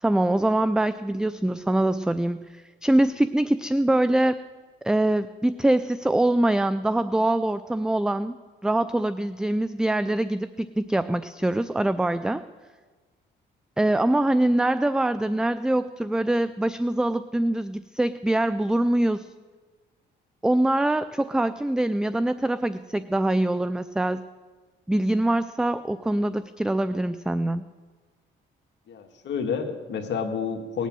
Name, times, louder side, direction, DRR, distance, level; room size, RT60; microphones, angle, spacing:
voice 1, 0.0-4.4 4.8-8.4 8.6-12.4 13.8-19.3 20.4-24.2 24.9-27.6, right 1 dB, 5° right, 13 dB, 0.4 m, -24 dB
voice 2, 28.9-30.9, left 6 dB, 65° left, 4 dB, 1.8 m, -29 dB
18.5 x 8.3 x 7.6 m, 1.4 s
cardioid pair, 90°, 20 cm